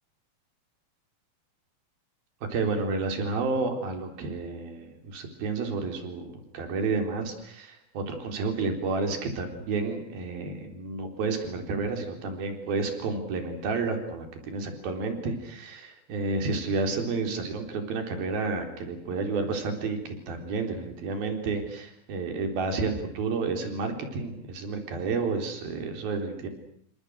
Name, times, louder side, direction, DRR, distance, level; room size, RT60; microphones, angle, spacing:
voice 1, 2.5-26.5, right 4 dB, 70° right, 5 dB, 5.8 m, -30 dB
29.5 x 26.0 x 6.5 m, 0.64 s
omnidirectional pair, 4.5 m